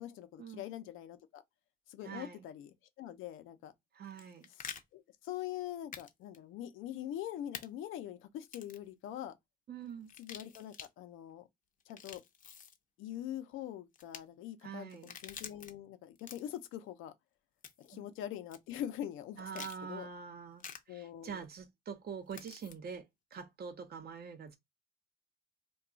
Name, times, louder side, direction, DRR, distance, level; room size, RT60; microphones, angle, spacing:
voice 1, 0.0-1.4 1.9-2.7 3.0-3.7 4.9-9.3 10.2-11.4 11.9-12.2 13.0-17.1 17.8-20.1 20.9-21.4, left 11 dB, 85° left, 0.5 m, -43 dB
voice 2, 2.0-2.5 3.9-4.5 9.7-10.1 14.6-15.2 17.9-18.1 19.4-23.1 23.3-24.6, right 6 dB, 50° right, 0.7 m, -45 dB
sound 1, 4.0-4.8 5.9-6.1 6.3-6.4 7.5-7.7 8.4-8.9 10.1-10.9 11.8-12.8 13.9-14.2 14.9-15.7 16.2-16.6 17.6-18.0 18.5-18.6 19.5-19.8 20.6-20.8 22.3-22.7, left 7 dB, 45° left, 0.6 m, -47 dB
2.3 x 2.3 x 3.8 m
cardioid pair, 90°, 20 cm